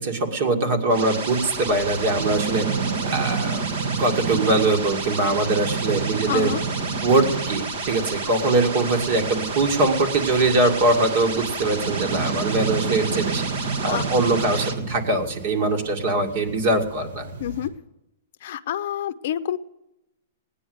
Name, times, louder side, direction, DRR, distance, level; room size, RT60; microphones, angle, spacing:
voice 1, 0.0-2.7 3.1-3.7 4.0-6.5 7.0-13.5 13.8-17.3, right 2 dB, 45° right, 6 dB, 2.2 m, -22 dB
sound 1, 0.9-14.7, right 3 dB, 60° right, 1.8 m, -31 dB
sound 2, 1.3-17.7, right 5 dB, 80° right, 2.9 m, -31 dB
voice 2, 6.3-6.6 13.9-14.0 17.4-17.7 18.4-19.6, left 11 dB, 55° left, 11 dB, 0.6 m, -27 dB
18.0 x 9.9 x 8.0 m, 0.90 s
hypercardioid pair, 165°, 0 cm